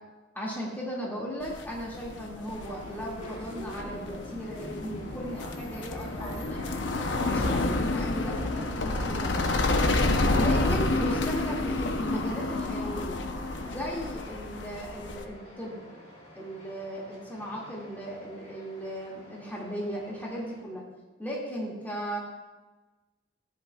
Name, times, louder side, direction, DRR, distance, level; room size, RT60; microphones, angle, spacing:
voice 1, 0.3-6.6 7.3-9.9 10.3-13.2 13.6-15.8 16.4-20.9 21.2-22.2, equal, 10° left, -5 dB, 2.2 m, -36 dB
sound 1, 1.4-15.2, left 2 dB, 85° left, 0.8 m, -29 dB
sound 2, 2.5-20.6, left 1 dB, 35° left, 2.8 m, -45 dB
14.0 x 10.5 x 2.4 m, 1.2 s
head